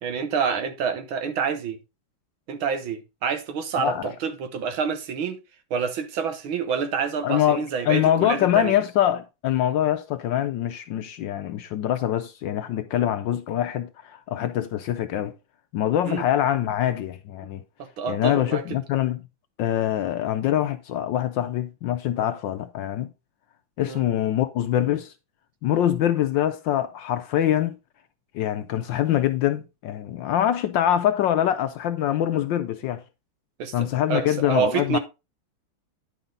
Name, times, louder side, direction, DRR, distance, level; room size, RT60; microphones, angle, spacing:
voice 1, 0.0-1.8 2.5-5.4 5.7-8.8 16.0-16.2 17.8-18.6 23.9-24.0 33.6-35.0, right 6 dB, 70° right, 1.8 m, -28 dB
voice 2, 3.8-4.1 7.2-15.3 15.7-17.6 18.1-19.2 19.6-23.1 23.8-25.1 25.6-27.8 28.3-33.0 33.7-35.0, left 11 dB, 75° left, 1.1 m, -24 dB
10.0 x 5.6 x 3.8 m
omnidirectional pair, 2.4 m